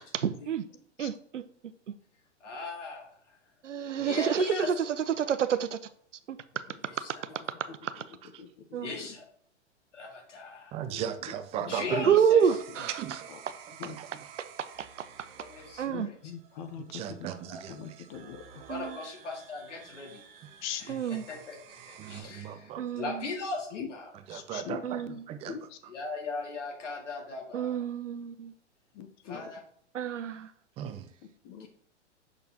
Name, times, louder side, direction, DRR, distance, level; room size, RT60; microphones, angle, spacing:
voice 1, 0.1-0.6 1.0-1.4 3.6-5.8 6.3-6.4 8.7-8.9 12.0-12.9 14.8-14.9 15.8-16.1 18.7-19.0 20.9-21.2 22.8-23.3 24.8-25.2 27.5-28.5 29.9-30.5, right 8 dB, 80° right, 13 dB, 0.7 m, -28 dB
voice 2, 2.4-3.1 4.0-4.7 6.8-7.1 8.8-9.2 9.9-10.7 11.7-12.6 15.4-16.2 17.5-17.6 18.7-20.2 20.8-24.1 25.9-27.8 29.3-29.6 31.6-31.7, left 3 dB, 80° left, 1 dB, 2.1 m, -39 dB
voice 3, 8.4-9.1 10.9-11.0 11.5-11.7 12.0-12.2 13.3-13.4 13.8-14.0 15.9-17.2 17.7-18.6 20.6-20.9 23.7-23.9 24.3-24.8 25.1-25.2 25.5-25.8 28.9-29.5 31.4-31.7, left 8 dB, 40° left, 8 dB, 0.8 m, -41 dB
voice 4, 10.7-12.1 13.0-13.3 13.8-14.1 16.8-18.1 22.0-22.8 24.1-25.5 30.8-31.1, right 9 dB, 20° right, 10 dB, 0.4 m, -37 dB
sound 1, 12.4-22.2, right 8 dB, 50° right, 1.0 m, -51 dB
6.5 x 6.1 x 2.9 m, 0.62 s
hypercardioid pair, 110°, 36 cm